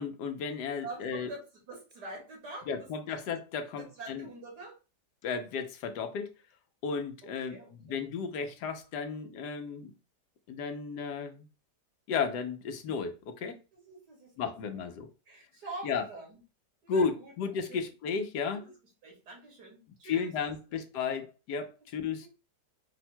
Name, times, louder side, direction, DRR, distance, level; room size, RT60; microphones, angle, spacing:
voice 1, 0.0-1.3 2.7-4.2 5.2-6.3 6.8-9.9 10.5-11.5 12.1-13.6 14.4-15.1 15.8-16.0 16.9-18.6 20.0-22.3, left 5 dB, 80° left, 1.3 m, -34 dB
voice 2, 0.8-3.2 3.8-4.8 7.5-8.0 13.7-14.8 15.3-16.4 16.8-17.3 17.7-17.8 18.5-18.6 19.0-20.3 20.7-20.8 22.0-22.3, right 2 dB, 80° right, 2.6 m, -45 dB
4.9 x 2.2 x 4.4 m
omnidirectional pair, 1.7 m